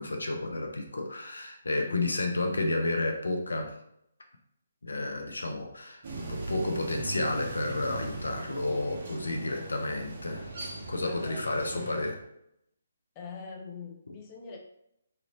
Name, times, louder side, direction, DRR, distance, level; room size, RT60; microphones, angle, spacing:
voice 1, 0.0-3.7 4.8-12.2, left 2 dB, 75° left, 3 dB, 0.6 m, -31 dB
voice 2, 1.9-2.3 8.6-8.9 9.4-9.7 11.0-12.0 13.2-14.6, left 6 dB, 25° left, 0 dB, 0.5 m, -43 dB
sound 1, 6.0-12.1, right 2 dB, 50° right, 0.8 m, -39 dB
3.2 x 2.4 x 3.0 m, 0.76 s
figure-of-eight pair, 140°, 0 cm